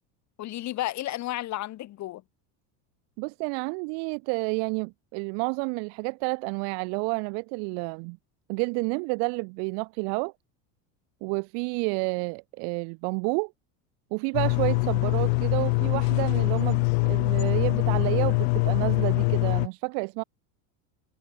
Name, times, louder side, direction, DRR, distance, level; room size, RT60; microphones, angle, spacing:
voice 1, 0.4-2.2, left 15 dB, 35° left, 3.4 m, -32 dB
voice 2, 3.2-8.2 8.5-10.3 11.2-13.5 14.1-20.2, right 40 dB or more, 55° right, 1.3 m, -30 dB
sound 1, 14.3-19.7, left 30 dB, 80° left, 0.7 m, -24 dB
cardioid pair, 170°, 47 cm